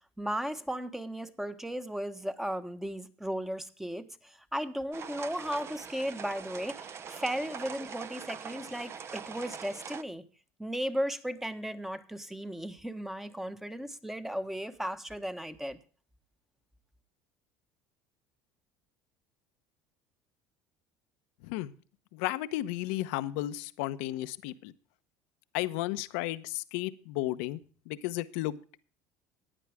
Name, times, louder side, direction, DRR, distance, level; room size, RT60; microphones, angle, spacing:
voice 1, 0.2-10.2 10.6-15.8, equal, 5° right, 10 dB, 1.3 m, -36 dB
sound 1, 4.9-10.0, right 7 dB, 40° right, 1.0 m, -43 dB
voice 2, 21.4-21.7 22.1-24.7 25.5-27.6 27.9-28.6, left 16 dB, 80° left, 13 dB, 0.9 m, -33 dB
15.0 x 10.0 x 3.6 m, 0.40 s
supercardioid pair, 105°, 7 cm